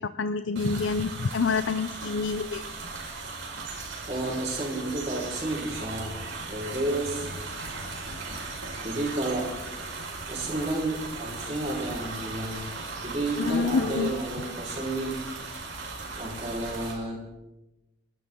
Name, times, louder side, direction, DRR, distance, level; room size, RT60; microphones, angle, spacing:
voice 1, 0.0-2.6 13.4-14.1, left 4 dB, 75° left, 11 dB, 0.6 m, -27 dB
sound 1, 0.6-16.9, right 3 dB, 85° right, 4.9 m, -37 dB
voice 2, 4.1-6.2 6.5-7.3 8.8-9.5 10.3-12.7 13.0-15.6 16.2-17.3, right 2 dB, 35° right, -4 dB, 5.0 m, -31 dB
30.0 x 12.0 x 3.8 m, 0.99 s
head